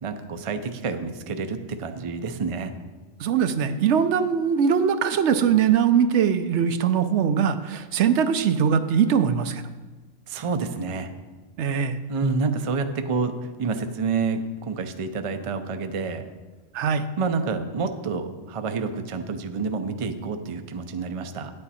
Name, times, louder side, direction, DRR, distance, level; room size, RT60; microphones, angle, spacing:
voice 1, 0.0-2.7 10.3-11.1 12.1-16.2 17.2-21.5, right 4 dB, 40° right, 7 dB, 0.5 m, -28 dB
voice 2, 3.2-9.6 11.6-12.0 16.7-17.1, right 7 dB, 70° right, 10 dB, 0.9 m, -21 dB
9.9 x 8.7 x 4.2 m, 1.3 s
omnidirectional pair, 1.3 m